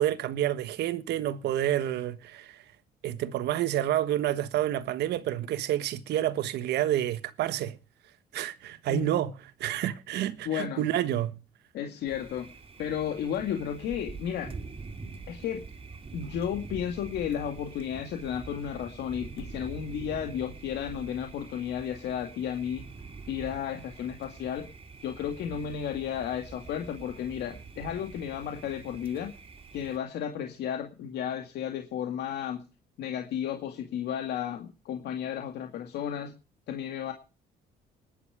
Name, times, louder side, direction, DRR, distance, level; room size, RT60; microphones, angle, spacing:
voice 1, 0.0-2.6 3.0-7.8 8.3-9.3 9.6-11.4, right 12 dB, 80° right, 1.4 m, -29 dB
voice 2, 10.5-10.9 11.7-12.5 12.8-14.5 15.3-15.6 16.1-22.8 23.3-24.7 25.0-29.3 29.7-32.6 33.0-36.3 36.7-37.1, left 9 dB, 80° left, 2.2 m, -33 dB
Thunder, 12.1-30.0, right 4 dB, 35° right, 2.8 m, -45 dB
20.0 x 10.5 x 4.9 m
cardioid pair, 110°, 17 cm